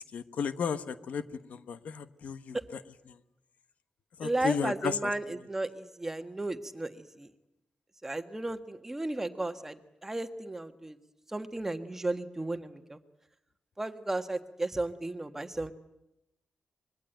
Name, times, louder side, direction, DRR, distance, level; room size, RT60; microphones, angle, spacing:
voice 1, 0.0-2.6 4.2-5.1, left 6 dB, 75° left, 11 dB, 1.2 m, -34 dB
voice 2, 4.2-7.3 8.0-11.0 11.3-13.0 13.8-15.7, right 2 dB, 15° right, 8 dB, 1.5 m, -34 dB
25.0 x 22.0 x 9.1 m, 0.90 s
wide cardioid pair, 110°, 3 cm